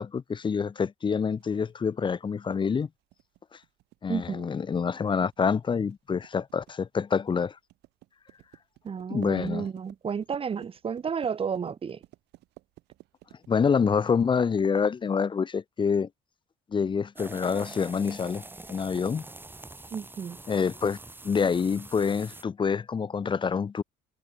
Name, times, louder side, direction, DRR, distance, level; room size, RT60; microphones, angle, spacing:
voice 1, 0.0-2.9 4.0-7.5 9.1-9.7 13.5-16.1 16.7-18.4 18.7-19.3 20.5-21.0 21.2-23.8, left 6 dB, 30° left, 0.8 m, -27 dB
sound 1, 1.4-15.1, right 18 dB, 85° right, 4.4 m, -53 dB
voice 2, 4.1-4.5 8.8-12.0 19.9-20.4, right 6 dB, 35° right, 1.5 m, -32 dB
sound 2, 17.2-22.4, right 2 dB, 10° right, 4.1 m, -45 dB
cardioid pair, 110°, 17 cm